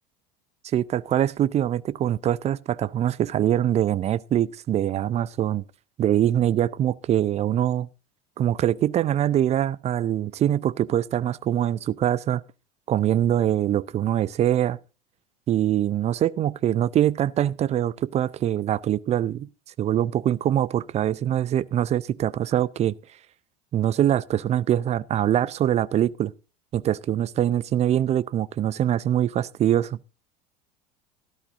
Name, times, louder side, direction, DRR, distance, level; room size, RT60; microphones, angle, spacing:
voice 1, 0.7-5.6 6.0-7.9 8.4-12.4 12.9-14.8 15.5-19.5 19.8-22.9 23.7-26.3 26.7-30.0, right 11 dB, 30° right, 0.5 m, -23 dB
14.0 x 12.5 x 2.6 m
hypercardioid pair, 80°, 21 cm